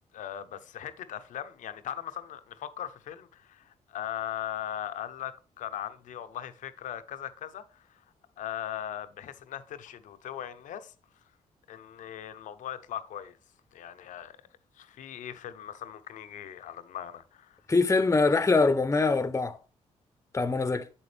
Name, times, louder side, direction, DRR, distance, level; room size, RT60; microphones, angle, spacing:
voice 1, 0.1-8.0 8.4-10.9 11.7-13.4 13.7-14.4 14.7-17.6, left 10 dB, 75° left, 0.8 m, -39 dB
voice 2, 17.7-19.6 20.3-20.9, left 3 dB, 20° left, 0.8 m, -23 dB
7.7 x 7.1 x 3.3 m
supercardioid pair, 65°, 13 cm